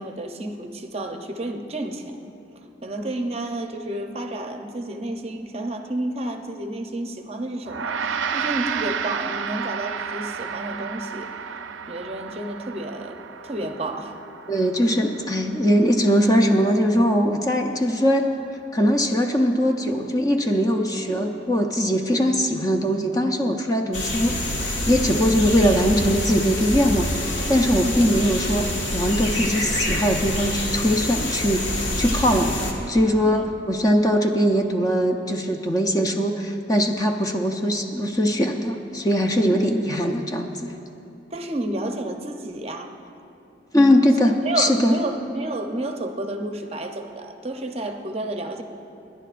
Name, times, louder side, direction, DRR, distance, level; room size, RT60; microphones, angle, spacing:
voice 1, 0.0-2.2 2.8-11.6 11.9-13.2 13.4-14.2 27.8-27.9 33.2-33.4 41.3-42.9 44.4-48.6, right 1 dB, 30° right, 5 dB, 0.6 m, -30 dB
Gong, 7.7-17.2, right 6 dB, 85° right, 0.5 m, -32 dB
voice 2, 14.5-18.3 18.7-27.1 27.5-32.6 32.9-40.7 43.7-45.0, equal, 20° left, 3 dB, 0.5 m, -21 dB
sound 1, 23.9-32.7, left 1 dB, 85° left, 1.6 m, -26 dB
27.5 x 10.5 x 2.5 m, 2.8 s
head